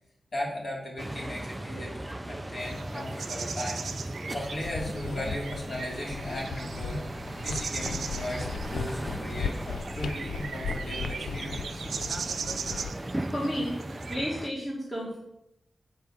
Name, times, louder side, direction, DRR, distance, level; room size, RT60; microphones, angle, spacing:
voice 1, 0.3-3.8 4.3-7.0 7.4-11.8, left 1 dB, 50° left, -3 dB, 3.0 m, -37 dB
sound 1, 1.0-14.5, right 1 dB, 10° right, 0.4 m, -37 dB
sound 2, 2.6-14.2, right 6 dB, 85° right, 0.6 m, -39 dB
sound 3, 4.4-12.9, left 6 dB, 80° left, 0.3 m, -38 dB
voice 2, 13.3-13.8 14.1-15.2, equal, 20° left, -3 dB, 1.6 m, -31 dB
8.0 x 4.6 x 7.2 m, 0.83 s
wide cardioid pair, 160°, 0 cm